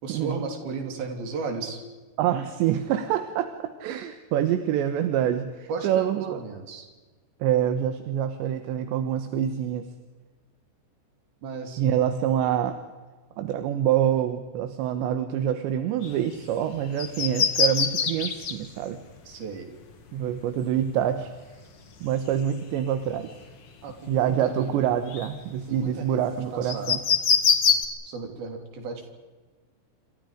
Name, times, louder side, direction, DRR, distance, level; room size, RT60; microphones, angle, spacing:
voice 1, 0.0-1.8 5.7-6.9 11.4-11.8 19.3-19.7 23.8-24.8 25.7-26.2 26.5-26.9 28.0-29.1, right 4 dB, 60° right, 4 dB, 4.9 m, -35 dB
voice 2, 2.2-6.4 7.4-9.9 11.8-12.8 13.4-19.0 20.1-21.3 22.0-23.3 24.1-27.0, right 10 dB, 80° right, 9 dB, 3.4 m, -26 dB
sound 1, 16.0-16.3 16.7-18.6 20.3-20.4 22.2-22.8 23.1-23.5 24.1-24.2 24.6-25.6 26.7-27.8, left 6 dB, 45° left, 2.0 m, -23 dB
28.0 x 26.5 x 5.1 m, 1.3 s
omnidirectional pair, 5.2 m